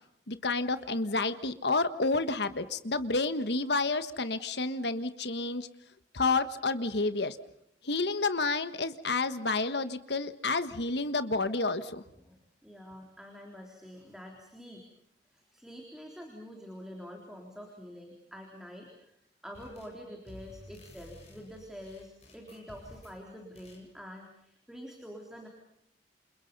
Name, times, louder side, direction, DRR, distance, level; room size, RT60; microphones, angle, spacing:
voice 1, 0.3-5.7 6.1-7.4 7.8-12.0, left 3 dB, 65° left, 11 dB, 1.5 m, -30 dB
voice 2, 12.2-14.8 15.3-19.1 19.4-25.5, equal, 5° right, 0 dB, 3.7 m, -47 dB
sound 1, 19.5-20.0 20.3-23.2 23.6-23.8, left 1 dB, 35° left, 7.9 m, -53 dB
29.0 x 28.5 x 5.5 m, 0.75 s
head